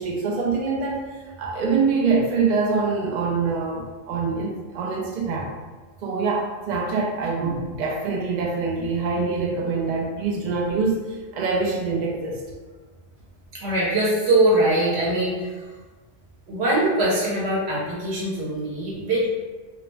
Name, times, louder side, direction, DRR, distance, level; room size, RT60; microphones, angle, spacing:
voice 1, 0.0-5.5 6.0-12.4, right 4 dB, 55° right, -2 dB, 0.5 m, -25 dB
voice 2, 13.5-15.5 16.5-19.3, right 1 dB, 80° right, -5 dB, 1.1 m, -22 dB
2.4 x 2.0 x 3.1 m, 1.3 s
omnidirectional pair, 1.1 m